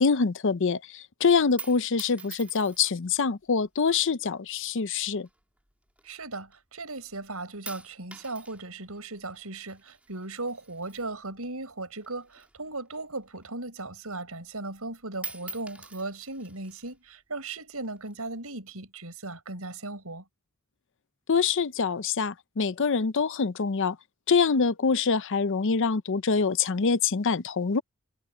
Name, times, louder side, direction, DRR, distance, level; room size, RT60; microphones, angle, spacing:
voice 1, 0.0-5.3 21.3-24.0 24.3-27.8, left 5 dB, 60° left, 0.6 m, -25 dB
sound 1, 1.3-3.1 3.9-4.3 5.2-6.5 6.9-7.3 7.7-11.7 12.0-13.7 14.1-14.2 14.5-14.9 15.1-17.0 17.7-18.4, right 4 dB, 5° right, 2.4 m, -45 dB
voice 2, 6.0-20.2, right 2 dB, 75° right, 6.7 m, -37 dB
head